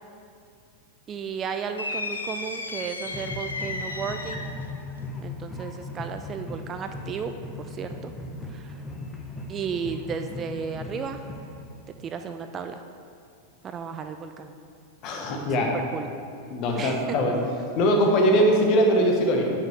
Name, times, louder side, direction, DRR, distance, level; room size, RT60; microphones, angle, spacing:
voice 1, 1.1-4.6 5.2-8.1 8.5-8.8 9.5-11.3 12.0-12.8 13.6-14.5 15.7-16.1 16.8-17.2, right 6 dB, 25° right, 7 dB, 0.3 m, -34 dB
sound 1, 1.8-4.7, left 2 dB, 75° left, 0.5 m, -34 dB
sound 2, 3.1-11.8, left 2 dB, 15° left, 0.7 m, -38 dB
voice 2, 15.0-15.7 16.5-17.4 17.8-19.4, equal, 40° left, 2 dB, 1.0 m, -21 dB
8.9 x 5.8 x 3.2 m, 2.4 s
figure-of-eight pair, 90°, 0 cm